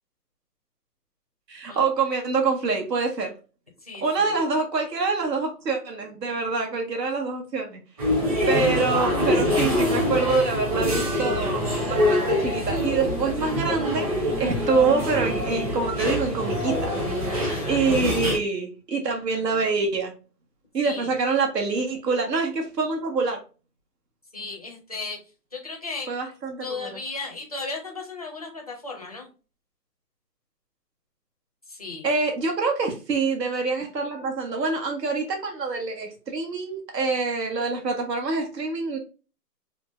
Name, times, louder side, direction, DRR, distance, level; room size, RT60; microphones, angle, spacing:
voice 1, 1.5-3.3 4.0-7.8 8.5-11.6 11.9-16.9 17.7-20.1 20.7-23.4 26.1-27.0 32.0-39.0, right 4 dB, 80° right, 2 dB, 1.6 m, -25 dB
voice 2, 3.8-4.4 17.3-17.8 20.8-21.1 24.3-25.2 25.5-26.1 26.6-29.3 31.7-32.1, left 3 dB, 25° left, 0 dB, 0.5 m, -35 dB
sound 1, 8.0-18.4, left 1 dB, 20° right, 0.9 m, -25 dB
3.7 x 3.5 x 2.5 m, 0.33 s
hypercardioid pair, 170°, 49 cm